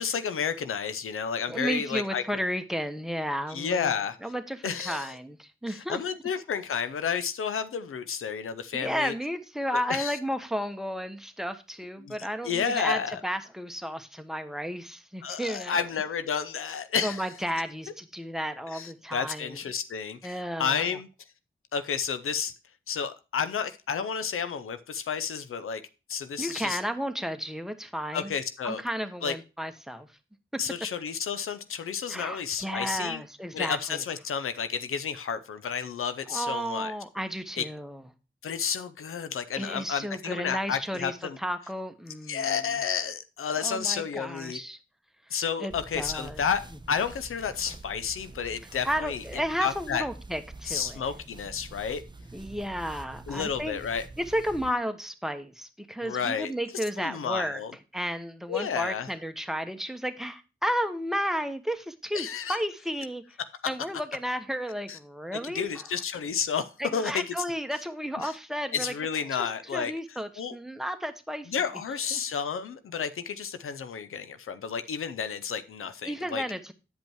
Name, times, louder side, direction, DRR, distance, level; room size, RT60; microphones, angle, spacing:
voice 1, 0.0-2.2 3.5-4.2 4.6-5.1 5.7-9.1 9.7-10.2 12.0-13.2 15.2-17.3 18.7-21.1 21.7-22.5 22.9-25.8 26.1-26.8 28.1-28.8 29.2-29.3 30.6-33.2 33.5-36.9 37.6-37.7 38.4-41.4 42.3-44.6 45.3-46.6 46.9-49.2 49.6-50.0 50.6-52.0 53.3-54.0 56.0-56.5 57.0-57.7 58.5-59.1 62.1-62.6 64.9-65.0 65.4-67.4 68.2-68.3 68.7-69.9 70.4-70.5 71.5-76.4, left 7 dB, 85° left, 0.6 m, -31 dB
voice 2, 1.5-4.0 4.2-6.0 8.7-15.8 17.0-19.6 20.2-21.0 26.4-28.3 28.6-30.1 32.1-34.0 36.3-38.0 39.6-42.7 43.6-44.8 45.3-46.4 48.8-51.0 52.3-53.8 54.2-57.6 57.9-63.2 63.6-65.9 66.8-68.9 69.3-71.5 72.1-72.2 76.1-76.7, equal, ahead, 1.2 m, -33 dB
sound 1, 45.7-54.7, right 2 dB, 20° right, 0.9 m, -46 dB
8.9 x 5.3 x 4.5 m
cardioid pair, 40°, 21 cm